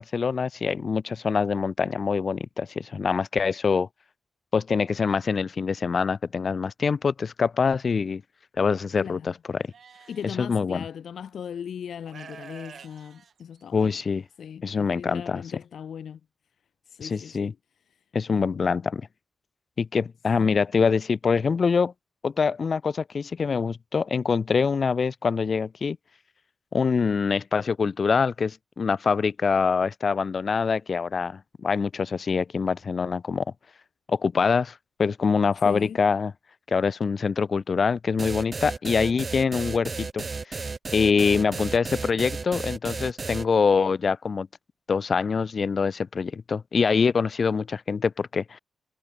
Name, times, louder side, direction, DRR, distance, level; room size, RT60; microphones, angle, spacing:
voice 1, 0.0-3.9 4.5-8.2 8.6-9.7 10.4-10.9 13.7-14.2 14.6-15.4 17.0-17.5 18.1-19.0 19.8-21.9 22.2-26.0 26.7-33.4 34.1-36.3 36.7-40.7 40.9-44.5 44.9-48.6, left 5 dB, 45° left, 0.4 m, -24 dB
voice 2, 9.0-9.3 10.1-13.9 14.4-16.2 16.9-17.6 18.3-18.8 20.4-20.6 35.6-36.0 41.2-41.7, left 8 dB, 85° left, 2.0 m, -39 dB
Livestock farm animals working animals, 9.7-10.3 11.3-11.4 12.0-14.1, right 6 dB, 60° right, 7.0 m, -47 dB
sound 1, 38.2-43.4, right 4 dB, 30° right, 0.6 m, -33 dB
wide cardioid pair, 160°, 0 cm